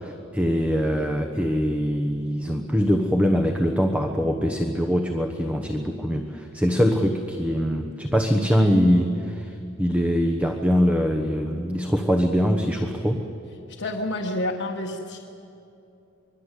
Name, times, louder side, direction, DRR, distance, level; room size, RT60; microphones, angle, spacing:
voice 1, 0.0-9.5 9.8-13.2, equal, 5° right, 4 dB, 1.1 m, -23 dB
voice 2, 13.8-15.2, left 1 dB, 60° left, -2 dB, 1.5 m, -28 dB
24.5 x 22.0 x 8.3 m, 2.7 s
head